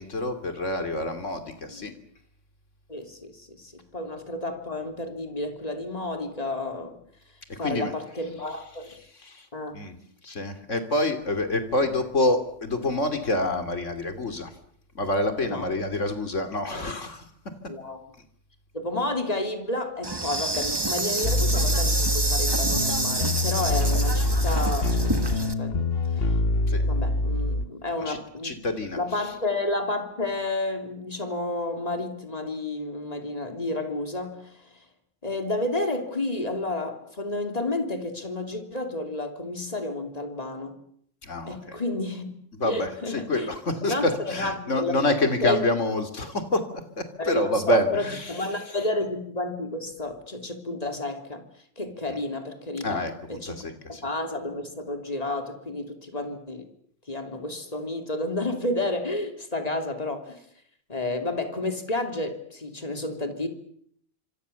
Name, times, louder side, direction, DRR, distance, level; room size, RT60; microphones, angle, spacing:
voice 1, 0.0-1.9 7.5-7.9 8.2-9.4 9.7-9.9 10.2-14.5 14.9-17.2 26.7-26.8 28.0-28.2 28.4-29.3 41.2-41.8 42.6-46.6 47.2-48.9 52.1-52.2 52.8-54.0, left 1 dB, 85° left, 8 dB, 3.2 m, -27 dB
voice 2, 2.9-7.0 7.6-8.9 9.5-9.8 15.4-15.7 17.7-18.0 18.7-26.4 26.8-28.6 29.0-34.7 35.2-40.8 41.5-42.3 42.6-43.5 43.8-45.6 47.2-51.4 51.8-53.0 53.3-53.7 54.0-56.7 57.1-60.4 60.9-63.5, left 2 dB, 30° left, 6 dB, 3.3 m, -31 dB
Insect, 20.0-25.5, right 2 dB, 20° right, 1.3 m, -28 dB
sound 1, 21.2-27.7, left 2 dB, 55° left, 1.6 m, -25 dB
26.5 x 26.0 x 7.0 m, 0.66 s
omnidirectional pair, 1.2 m